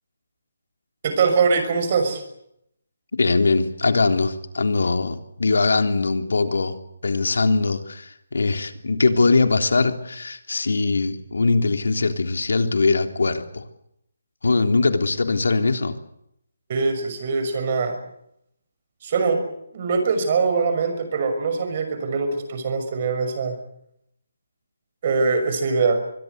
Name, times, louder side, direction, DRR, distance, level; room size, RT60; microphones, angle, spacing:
voice 1, 1.0-2.2 16.7-18.0 19.0-19.4 19.7-23.6 25.0-26.0, right 4 dB, 35° right, 7 dB, 6.1 m, -22 dB
voice 2, 3.1-6.8 7.0-13.6 14.4-15.9, left 3 dB, 80° left, 7 dB, 3.4 m, -21 dB
24.0 x 22.5 x 8.2 m, 0.77 s
hypercardioid pair, 170°, 0 cm